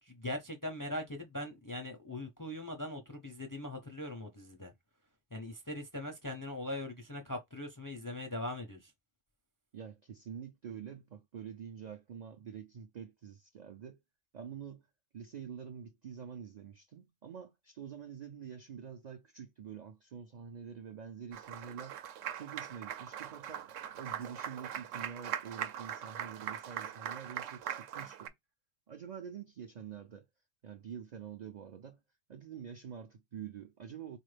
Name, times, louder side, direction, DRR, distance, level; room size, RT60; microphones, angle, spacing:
voice 1, 0.0-4.7 5.3-8.9, left 1 dB, 25° left, 0.4 m, -41 dB
voice 2, 9.7-14.0 14.3-14.9 15.1-22.0 22.3-23.7 23.9-28.3 28.9-30.3 30.6-32.0 32.3-34.2, right 7 dB, 65° right, 0.4 m, -46 dB
Applause, 21.3-28.3, right 10 dB, 85° right, 0.9 m, -41 dB
4.1 x 2.5 x 3.2 m
omnidirectional pair, 1.3 m